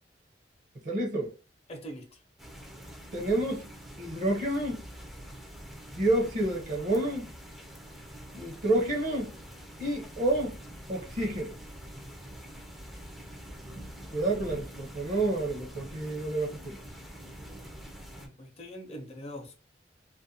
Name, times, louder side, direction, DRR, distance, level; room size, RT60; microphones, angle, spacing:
voice 1, 0.8-1.3 3.1-3.7 4.0-4.8 5.9-7.3 8.3-9.3 9.8-10.6 10.9-11.6 14.1-16.8, right 1 dB, 45° right, 0.8 m, -29 dB
voice 2, 1.7-2.2 18.2-19.7, equal, 35° left, 0.7 m, -43 dB
sound 1, 2.4-18.3, equal, ahead, 0.5 m, -45 dB
2.5 x 2.1 x 2.7 m
head